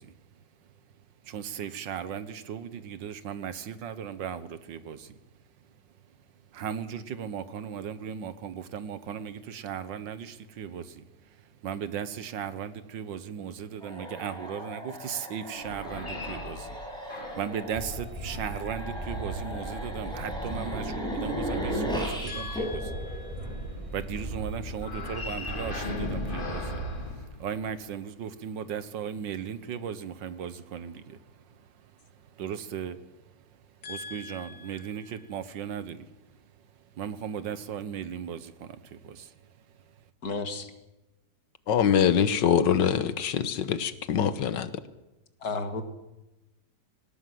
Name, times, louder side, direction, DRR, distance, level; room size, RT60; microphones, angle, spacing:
voice 1, 0.0-5.2 5.6-40.0, right 8 dB, 90° right, 13 dB, 1.8 m, -38 dB
sound 1, 13.8-24.0, equal, ahead, 6.4 m, -36 dB
sound 2, 15.6-17.6 18.3-20.7 24.8-27.9, left 3 dB, 30° left, 1.8 m, -39 dB
sound 3, 17.7-27.1, right 1 dB, 15° right, 5.3 m, -38 dB
voice 2, 22.3-23.8 33.8-35.2 40.2-40.7 45.4-45.8, left 3 dB, 60° left, 8 dB, 2.2 m, -37 dB
voice 3, 41.7-44.7, left 8 dB, 80° left, 13 dB, 1.7 m, -24 dB
18.5 x 18.5 x 7.8 m, 1.0 s
omnidirectional pair, 1.9 m